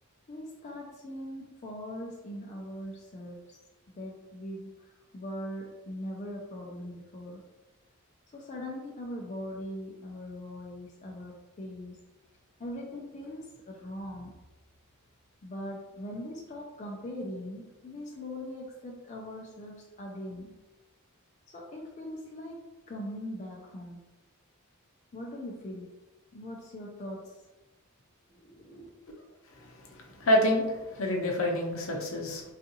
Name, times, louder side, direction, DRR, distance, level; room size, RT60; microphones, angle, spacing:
voice 1, 0.3-3.6 3.9-7.4 8.3-12.0 12.6-14.4 15.4-20.5 21.5-24.0 25.1-25.9 26.3-27.4 28.3-28.9, left 1 dB, 35° left, -1 dB, 0.4 m, -41 dB
voice 2, 29.5-32.4, left 1 dB, 70° left, 1 dB, 0.7 m, -28 dB
3.6 x 2.4 x 2.7 m, 1.1 s
head